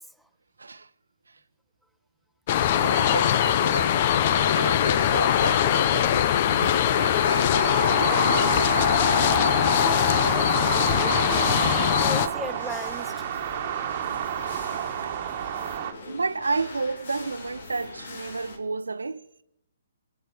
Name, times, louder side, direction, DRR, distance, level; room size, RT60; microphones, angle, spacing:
voice 1, 0.6-0.9 1.3-1.4 2.8-8.6 14.4-14.5 15.0-15.6 16.1-19.2, right 3 dB, 75° right, 0.8 m, -32 dB
sound 1, 2.5-12.3, left 10 dB, 40° left, 0.8 m, -22 dB
sound 2, 6.6-18.6, left 3 dB, 55° left, 2.9 m, -42 dB
sound 3, 7.5-15.9, right 10 dB, 40° right, 1.5 m, -30 dB
voice 2, 9.8-13.1, equal, ahead, 0.6 m, -37 dB
24.5 x 9.4 x 5.0 m
figure-of-eight pair, 130°, 0 cm